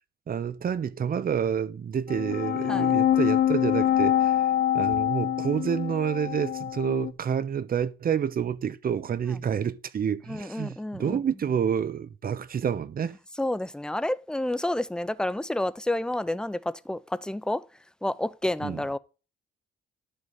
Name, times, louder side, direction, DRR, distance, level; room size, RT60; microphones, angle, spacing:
voice 1, 0.3-4.4 4.7-13.2 18.6-18.8, right 8 dB, 50° right, 0.9 m, -28 dB
sound 1, 2.1-7.1, left 11 dB, 60° left, 0.7 m, -25 dB
voice 2, 10.3-11.2 13.4-17.7 18.0-19.0, left 1 dB, 5° left, 0.7 m, -29 dB
11.5 x 4.0 x 7.0 m
cardioid pair, 90°, 20 cm